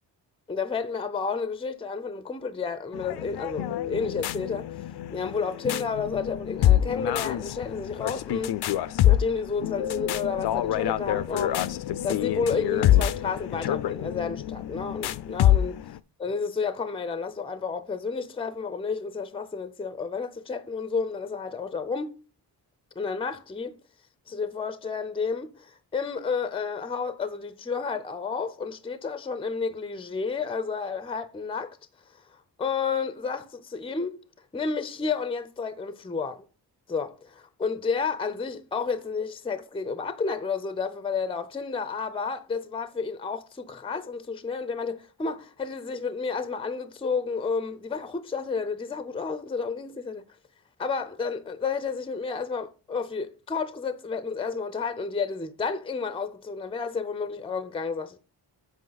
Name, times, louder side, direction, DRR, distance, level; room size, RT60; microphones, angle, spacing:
voice 1, 0.5-4.7 5.1-8.6 9.0-11.7 12.0-15.8 16.2-22.1 23.0-23.8 24.3-31.8 32.1-34.2 34.5-36.4 36.9-50.2 50.8-58.2, left 5 dB, 15° left, 0.5 m, -31 dB
sound 1, 2.9-16.0, left 12 dB, 65° left, 0.5 m, -26 dB
7.9 x 5.7 x 4.0 m
wide cardioid pair, 125°, 42 cm